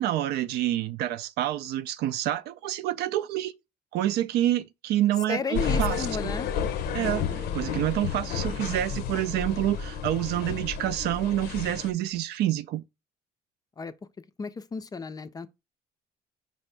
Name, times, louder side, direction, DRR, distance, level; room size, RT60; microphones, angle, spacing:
voice 1, 0.0-3.5 3.9-6.0 6.2-6.3 6.9-7.2 7.5-12.8, right 13 dB, 75° right, 0.4 m, -27 dB
voice 2, 5.3-6.5 13.8-13.9 14.4-15.5, left 5 dB, 20° left, 0.4 m, -33 dB
sound 1, 5.5-11.9, left 6 dB, 70° left, 0.6 m, -31 dB
5.1 x 2.7 x 3.3 m
cardioid pair, 110°, 17 cm